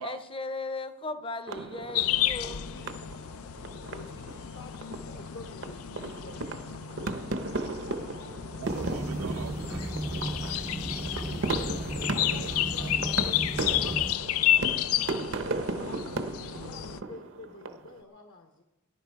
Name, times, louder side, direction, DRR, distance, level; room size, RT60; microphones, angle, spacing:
voice 1, 0.0-2.7, left 2 dB, 25° left, 0.7 m, -37 dB
sound 1, 1.5-18.0, right 3 dB, 60° right, 0.8 m, -36 dB
sound 2, 1.9-17.0, left 12 dB, 80° left, 0.5 m, -32 dB
voice 2, 2.4-3.0 3.9-7.2 7.8-8.4 10.7-15.2 15.6-18.6, left 2 dB, 60° left, 1.1 m, -48 dB
sound 3, 8.6-14.2, right 1 dB, 10° right, 0.5 m, -35 dB
voice 3, 8.6-11.3 12.2-13.0, right 7 dB, 85° right, 0.4 m, -44 dB
19.0 x 11.0 x 4.6 m
head